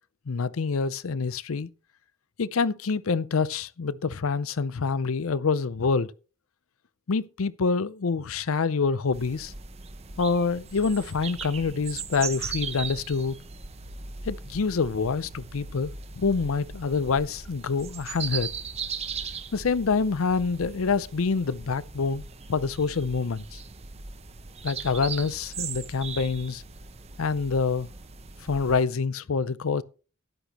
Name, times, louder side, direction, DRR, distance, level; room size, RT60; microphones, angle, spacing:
voice 1, 0.3-1.7 2.4-6.1 7.1-9.5 10.2-13.4 14.3-18.5 19.5-22.2 22.5-23.6 24.6-26.6 27.2-27.9 28.5-29.8, left 4 dB, 70° left, 0.6 m, -26 dB
sound 1, 9.1-28.8, right 5 dB, 30° right, 0.8 m, -39 dB
13.0 x 10.0 x 2.9 m
head